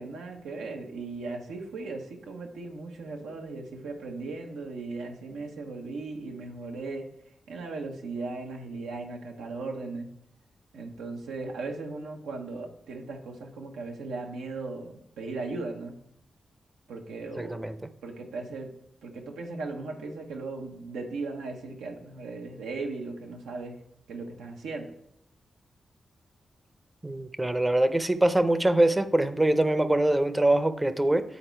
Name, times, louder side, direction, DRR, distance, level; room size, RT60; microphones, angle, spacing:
voice 1, 0.0-7.1 7.5-10.1 10.7-16.0 16.9-17.6 18.0-18.7 19.0-23.8 24.1-24.9, right 3 dB, 90° right, 2 dB, 1.0 m, -37 dB
voice 2, 17.4-17.7 27.0-31.2, right 1 dB, 20° right, 11 dB, 0.7 m, -23 dB
8.4 x 4.1 x 4.5 m, 0.75 s
supercardioid pair, 40°, 0 cm